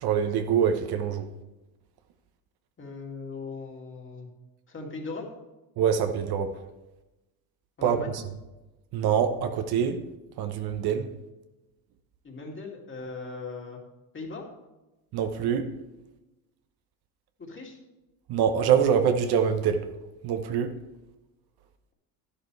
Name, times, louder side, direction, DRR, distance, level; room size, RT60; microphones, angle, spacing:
voice 1, 0.0-1.2 5.8-6.5 7.8-8.0 8.9-10.0 10.4-11.1 15.1-15.7 18.3-19.8 20.2-20.7, right 8 dB, 60° right, 1.0 m, -24 dB
voice 2, 2.8-4.3 4.7-5.3 7.8-8.2 12.2-13.8 14.1-14.5 17.4-17.8, left 4 dB, 30° left, 2.4 m, -39 dB
11.5 x 11.0 x 3.3 m
cardioid pair, 110°, 42 cm